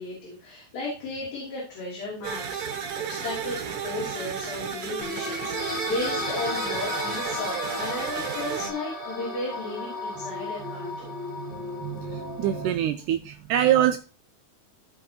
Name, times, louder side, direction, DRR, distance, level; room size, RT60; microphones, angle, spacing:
voice 1, 0.0-11.1, left 2 dB, 75° left, -5 dB, 4.6 m, -35 dB
sound 1, 2.2-8.7, right 7 dB, 65° right, 1.4 m, -33 dB
sound 2, 5.0-12.6, left 2 dB, 35° left, 6.0 m, -34 dB
voice 2, 12.4-14.0, right 11 dB, 90° right, 7 dB, 1.8 m, -23 dB
15.0 x 5.4 x 2.9 m, 0.34 s
omnidirectional pair, 4.2 m